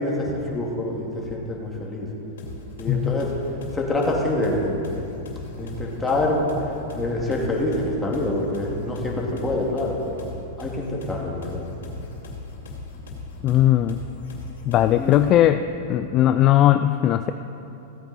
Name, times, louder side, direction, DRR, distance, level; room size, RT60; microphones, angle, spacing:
voice 1, 0.0-2.1 2.8-3.3 3.7-4.8 5.5-6.4 6.9-10.3 10.6-11.7 14.9-15.2, left 1 dB, 10° left, -2 dB, 2.1 m, -26 dB
sound 1, 2.4-15.5, left 3 dB, 90° left, 2.5 m, -38 dB
voice 2, 2.9-3.2 13.4-14.0 14.6-15.6 15.9-17.3, left 12 dB, 35° left, 9 dB, 0.3 m, -18 dB
16.0 x 8.9 x 4.1 m, 2.9 s
hypercardioid pair, 130°, 0 cm